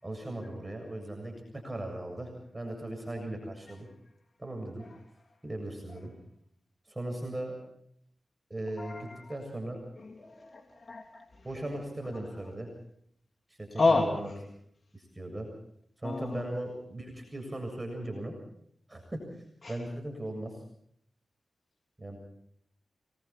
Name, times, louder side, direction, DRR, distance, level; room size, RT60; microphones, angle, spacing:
voice 1, 0.0-3.9 4.4-4.8 5.4-6.1 6.9-7.6 8.5-9.8 11.4-12.7 13.5-14.3 14.9-15.5 16.0-18.3 18.9-19.2 19.7-20.6 22.0-22.2, right 1 dB, 25° right, 2 dB, 7.2 m, -38 dB
voice 2, 8.8-9.2 10.0-11.2 13.7-14.2 16.0-16.4 19.6-19.7, left 3 dB, 55° left, 3 dB, 3.3 m, -29 dB
30.0 x 21.0 x 4.4 m, 0.68 s
cardioid pair, 50°, 0 cm